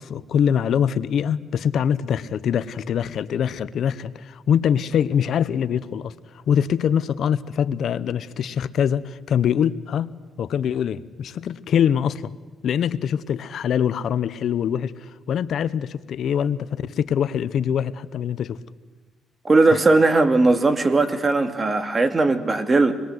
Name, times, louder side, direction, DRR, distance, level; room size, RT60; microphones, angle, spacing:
voice 1, 0.0-6.1 6.5-12.3 12.6-18.6 19.7-19.8, left 8 dB, 65° left, 15 dB, 0.9 m, -23 dB
voice 2, 19.4-22.9, right 3 dB, 30° right, 9 dB, 2.2 m, -18 dB
26.5 x 21.0 x 8.0 m, 1.3 s
cardioid pair, 90°, 0 cm